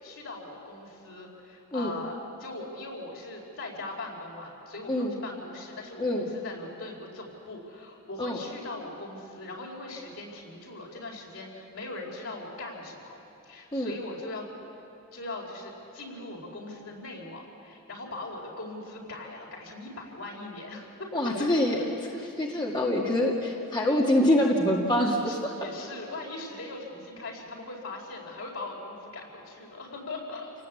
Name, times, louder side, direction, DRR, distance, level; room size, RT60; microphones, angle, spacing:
voice 1, 0.0-13.2 13.4-14.4 15.1-20.9 21.7-21.8 23.4-23.5 24.4-24.7 25.3-30.5, left 2 dB, 75° left, -1 dB, 4.7 m, -40 dB
voice 2, 21.1-21.8 22.1-25.5, left 1 dB, 20° left, -2 dB, 2.0 m, -25 dB
28.5 x 18.0 x 8.4 m, 3.0 s
head